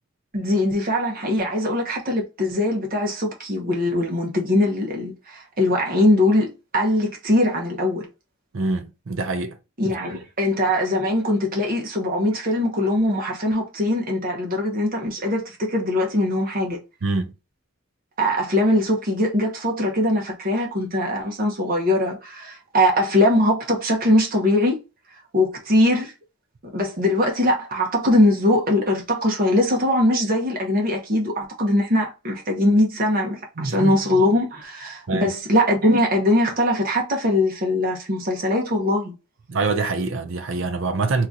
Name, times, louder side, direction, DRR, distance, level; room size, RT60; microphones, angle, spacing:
voice 1, 0.3-8.1 9.8-16.8 18.2-24.8 25.3-26.1 26.7-39.1, left 1 dB, 40° right, 0.9 m, -21 dB
voice 2, 8.5-9.6 10.1-10.2 17.0-17.3 33.6-34.0 35.1-35.3 39.5-41.3, right 3 dB, 65° right, 0.6 m, -25 dB
2.9 x 2.4 x 3.9 m
head